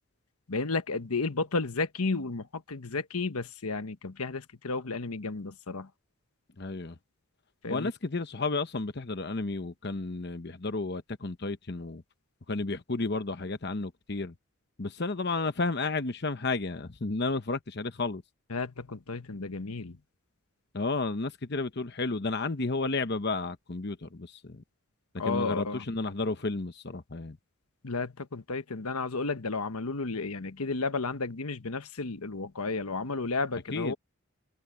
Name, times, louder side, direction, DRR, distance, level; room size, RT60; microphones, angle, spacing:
voice 1, 0.5-5.9 7.6-7.9 18.5-20.0 25.2-25.8 27.8-33.9, left 3 dB, 85° left, 1.2 m, -32 dB
voice 2, 6.6-7.0 7.7-12.0 12.5-14.3 14.8-18.2 20.7-24.6 25.2-27.4 33.7-33.9, left 3 dB, 50° left, 0.9 m, -32 dB
head